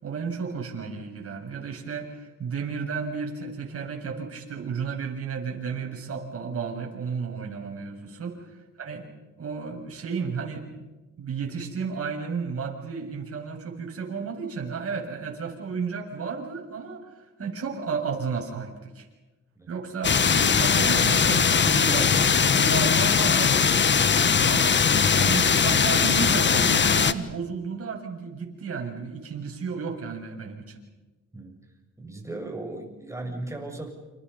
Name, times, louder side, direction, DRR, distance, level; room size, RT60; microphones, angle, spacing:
voice 1, 0.0-8.4 8.8-9.1 9.4-10.9 11.2-19.1 19.7-23.7 24.4-30.8, right 5 dB, 50° right, 0 dB, 7.3 m, -33 dB
sound 1, 20.0-27.1, left 6 dB, 35° left, 1.3 m, -20 dB
voice 2, 32.0-33.9, right 2 dB, 10° right, 2 dB, 7.1 m, -36 dB
29.5 x 28.0 x 5.6 m, 1.2 s
cardioid pair, 90°, 30 cm